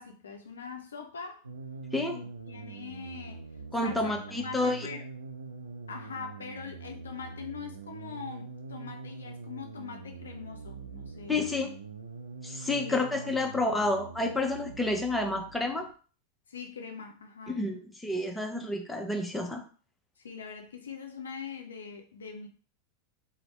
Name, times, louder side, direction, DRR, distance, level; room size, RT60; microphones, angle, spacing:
voice 1, 0.0-1.4 2.1-3.5 3.8-4.1 4.4-5.1 5.9-11.6 12.7-13.1 13.4-13.6 16.5-17.7 20.2-22.5, left 6 dB, 80° left, 4 dB, 0.5 m, -42 dB
sound 1, 1.4-15.9, right 4 dB, 90° right, 0.4 m, -44 dB
voice 2, 3.7-4.9 11.3-11.7 12.4-15.9 17.5-19.6, left 2 dB, 5° left, 2 dB, 0.6 m, -29 dB
2.7 x 2.1 x 3.1 m, 0.40 s
figure-of-eight pair, 90°, 0 cm